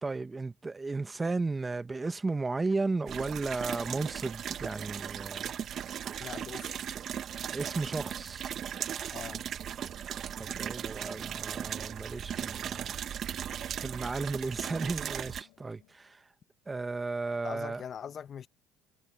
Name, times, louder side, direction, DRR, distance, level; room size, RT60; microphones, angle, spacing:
voice 1, 0.0-5.5 7.5-8.5 10.4-12.9 13.8-16.2 16.7-17.8, right 3 dB, 20° right, 1.1 m, -34 dB
sound 1, 3.1-15.4, right 9 dB, 50° right, 1.0 m, -37 dB
voice 2, 6.2-6.7 9.1-9.4 17.4-18.5, left 8 dB, 45° left, 1.0 m, -41 dB
sound 2, 6.6-7.9 8.3-10.3 10.7-12.0 12.4-14.3 14.8-16.0, left 23 dB, 80° left, 4.5 m, -71 dB
supercardioid pair, 95°, 0 cm